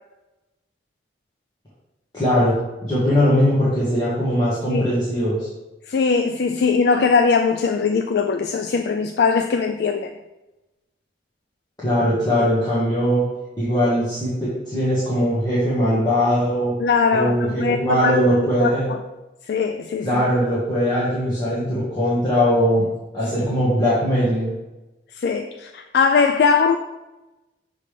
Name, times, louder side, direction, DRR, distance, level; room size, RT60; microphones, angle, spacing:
voice 1, 2.1-2.5 2.8-5.5 11.8-13.2 13.6-16.7 17.1-18.9 20.0-22.9 23.1-24.5, equal, 20° left, 1.5 m, -20 dB
voice 2, 5.9-10.1 16.8-19.0 19.5-20.2 25.1-26.8, left 5 dB, 65° left, 0.3 m, -20 dB
6.8 x 3.3 x 5.1 m
head